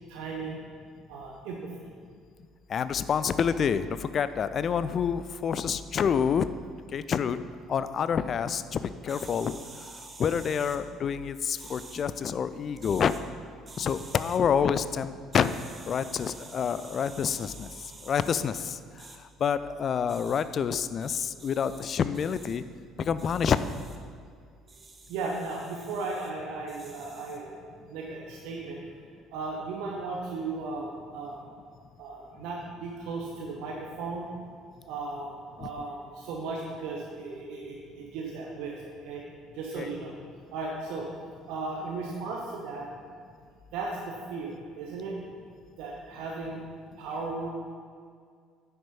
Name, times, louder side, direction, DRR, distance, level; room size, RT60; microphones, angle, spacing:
voice 1, 0.1-0.6 1.1-1.7 25.1-27.6 27.9-28.8 29.3-31.4 32.0-34.3 34.9-39.2 39.5-40.1 40.5-41.1 41.5-42.9 43.7-45.2 45.8-46.6 47.0-47.5, right 3 dB, 60° right, -1 dB, 1.0 m, -36 dB
voice 2, 2.7-6.5 6.9-7.4 7.7-9.6 10.2-13.1 13.8-15.5 15.9-17.7 18.1-18.5 19.4-22.6 23.1-23.7 39.8-39.9, left 7 dB, 40° left, 13 dB, 0.4 m, -27 dB
sound 1, 9.1-10.8 11.6-12.1 12.7-13.2 13.7-14.4 15.3-18.4 19.0-19.2 20.1-20.4 21.0-21.9 22.1-22.6 23.2-24.0 24.7-26.3 26.7-27.4, right 3 dB, 25° right, 1.0 m, -49 dB
9.7 x 5.9 x 5.4 m, 2.1 s
figure-of-eight pair, 55°, 0 cm